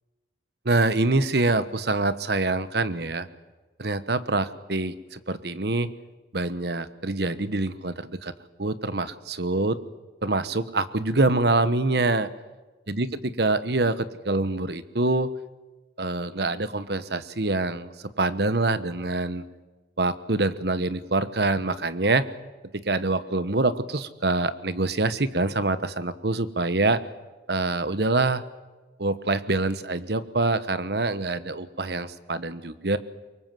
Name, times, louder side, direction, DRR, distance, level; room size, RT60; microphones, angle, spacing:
voice 1, 0.6-3.3 3.8-5.9 6.3-8.3 8.6-9.8 10.2-12.3 12.9-15.3 16.0-19.4 20.0-22.3 22.7-27.0 27.5-28.4 29.0-33.0, right 2 dB, 60° right, 14 dB, 1.2 m, -25 dB
25.0 x 23.0 x 7.7 m, 1.2 s
head